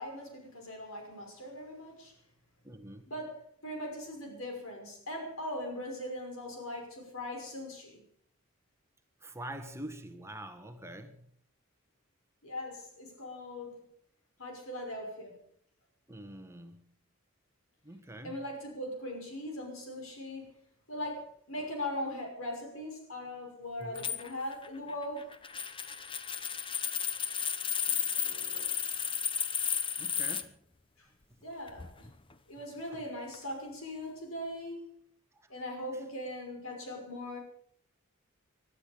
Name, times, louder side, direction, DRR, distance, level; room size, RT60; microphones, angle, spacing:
voice 1, 0.0-2.1 3.1-8.0 12.4-13.8 14.4-15.5 18.2-20.6 20.9-25.3 27.8-28.7 31.0-31.1 31.4-32.1 32.5-35.0 35.5-37.4, left 1 dB, 80° left, 5.8 m, -40 dB
voice 2, 2.6-3.0 9.2-11.3 16.1-16.9 17.8-18.4 23.8-24.0 25.9-26.0 30.0-30.6 31.3-31.4 32.9-33.1 35.3-35.6 35.9-36.0, right 1 dB, 15° right, 1.5 m, -45 dB
sound 1, 24.0-30.4 31.7-32.3 33.3-33.5, left 7 dB, 25° left, 0.9 m, -33 dB
20.5 x 12.5 x 5.2 m
head